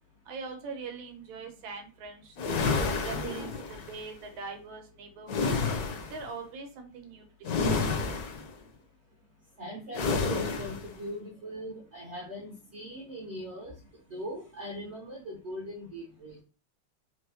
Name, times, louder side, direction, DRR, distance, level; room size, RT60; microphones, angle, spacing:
voice 1, 0.3-2.7 3.0-3.5 3.9-5.6 6.1-7.2 7.6-7.8, right 4 dB, 90° right, 3 dB, 1.6 m, -42 dB
sound 1, 2.4-4.0 5.3-6.2 7.4-8.5 9.9-10.9, left 4 dB, 65° left, 1.0 m, -29 dB
voice 2, 9.6-13.7 14.1-16.4, equal, 70° right, -2 dB, 0.6 m, -40 dB
4.2 x 2.0 x 2.7 m, 0.34 s
omnidirectional pair, 2.1 m